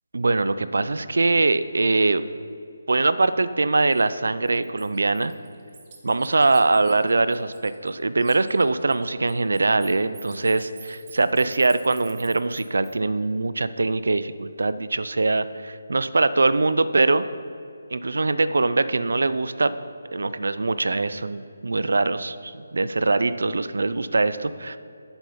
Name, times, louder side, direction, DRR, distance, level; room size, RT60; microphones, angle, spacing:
voice 1, 0.1-2.2 2.9-5.3 6.0-17.2 17.9-19.7 20.1-24.8, right 3 dB, 75° right, 13 dB, 0.5 m, -22 dB
Bird, 3.9-4.0 4.5-7.9 8.2-12.9, right 6 dB, 25° right, 1.0 m, -48 dB
8.8 x 7.1 x 5.6 m, 2.6 s
hypercardioid pair, 170°, 0 cm